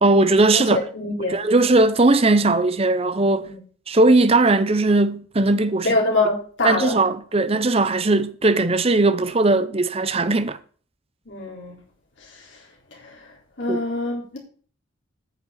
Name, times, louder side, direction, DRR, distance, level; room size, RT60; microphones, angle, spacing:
voice 1, 0.0-0.8 1.3-3.5 3.9-5.9 6.6-10.6 13.7-13.8, right 2 dB, 30° right, 0.7 m, -18 dB
voice 2, 0.5-1.4 3.4-3.6 5.8-7.0 11.3-11.8 12.2-12.6 12.9-13.3 13.6-14.4, left 2 dB, 60° left, 3.9 m, -25 dB
9.2 x 6.0 x 7.8 m
head